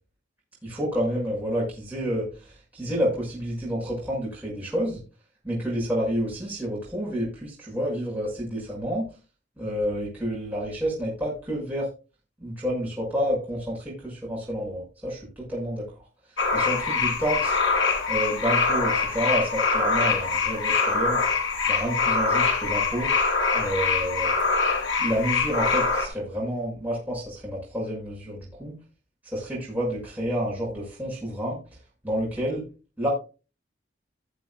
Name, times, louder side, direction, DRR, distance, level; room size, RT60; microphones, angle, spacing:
voice 1, 0.6-2.3 2.7-5.0 5.4-9.1 9.6-11.9 12.4-15.8 16.5-17.6 18.1-21.2 21.7-23.1 23.5-24.3 25.0-28.8 29.2-31.6 32.0-32.7 33.0-33.1, equal, 10° right, -6 dB, 5.9 m, -29 dB
sound 1, 16.4-26.1, left 4 dB, 90° left, 2.2 m, -24 dB
19.0 x 7.1 x 2.3 m, 0.32 s
head